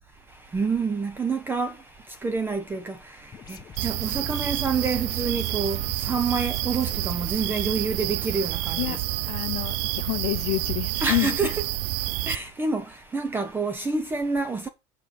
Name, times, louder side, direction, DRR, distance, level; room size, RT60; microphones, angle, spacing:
voice 1, 0.3-9.0 11.0-11.7 12.0-14.7, right 4 dB, 15° right, 1.0 m, -28 dB
sound 1, 3.3-7.7, left 7 dB, 25° left, 1.2 m, -45 dB
sound 2, 3.8-12.4, right 17 dB, 70° right, 0.5 m, -29 dB
voice 2, 9.2-11.5, left 22 dB, 65° left, 0.6 m, -28 dB
8.7 x 4.7 x 7.0 m
cardioid pair, 150°, 15 cm